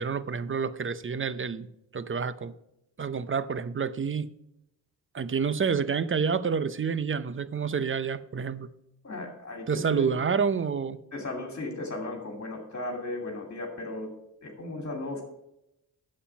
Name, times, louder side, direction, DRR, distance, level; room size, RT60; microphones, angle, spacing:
voice 1, 0.0-1.7 1.9-2.5 3.0-4.3 5.1-8.7 9.7-11.0, right 6 dB, 35° right, 15 dB, 0.6 m, -28 dB
voice 2, 9.0-10.2 11.1-14.1 14.4-15.2, left 2 dB, 35° left, 2 dB, 2.4 m, -36 dB
8.6 x 7.5 x 5.9 m, 0.84 s
cardioid pair, 75°, 38 cm